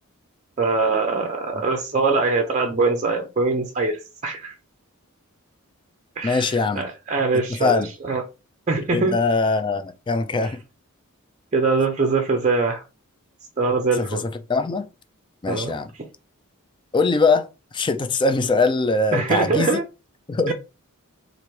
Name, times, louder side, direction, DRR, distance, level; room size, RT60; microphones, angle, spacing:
voice 1, 0.6-4.5 6.2-6.5 6.8-8.2 8.7-9.2 11.5-12.8 13.6-14.2 15.5-15.7 19.1-19.8 20.5-20.6, right 3 dB, 35° right, 0.5 m, -22 dB
voice 2, 6.2-6.9 7.3-7.9 8.9-10.6 14.0-14.9 15.4-15.9 16.9-17.5 17.7-19.8 20.3-20.5, left 3 dB, 20° left, 0.3 m, -22 dB
3.1 x 2.5 x 4.4 m
head